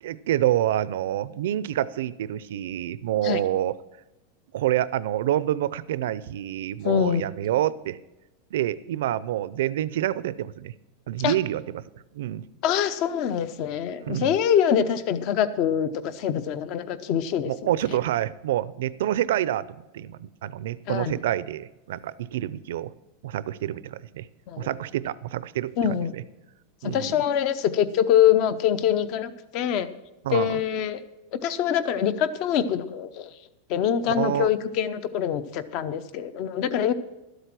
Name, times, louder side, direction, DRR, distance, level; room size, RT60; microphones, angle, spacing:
voice 1, 0.0-3.7 4.5-8.0 8.5-10.7 11.1-11.8 12.1-12.4 14.0-14.3 17.4-19.7 19.9-22.9 23.2-24.3 24.6-26.2 26.8-27.2 30.2-30.6 34.0-34.5, right 12 dB, 75° right, 17 dB, 0.5 m, -27 dB
voice 2, 6.8-7.3 11.2-11.3 12.6-17.5 20.9-21.2 24.5-24.7 25.8-26.1 26.8-29.9 30.3-31.0 31.3-33.3 33.7-36.9, left 9 dB, 40° left, 14 dB, 0.7 m, -24 dB
13.0 x 8.1 x 6.0 m, 1.0 s
supercardioid pair, 165°, 0 cm